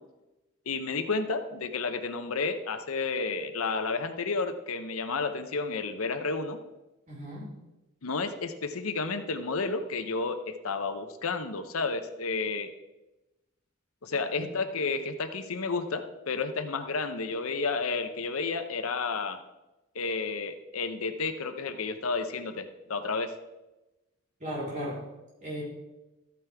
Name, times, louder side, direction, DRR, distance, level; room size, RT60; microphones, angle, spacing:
voice 1, 0.7-6.6 8.0-12.7 14.0-19.4 19.9-23.3, left 4 dB, 80° left, 8 dB, 0.8 m, -31 dB
voice 2, 7.1-7.5 14.4-14.5 24.4-25.0 25.4-25.6, equal, 35° right, -6 dB, 4.1 m, -36 dB
13.0 x 9.2 x 3.5 m, 1.0 s
head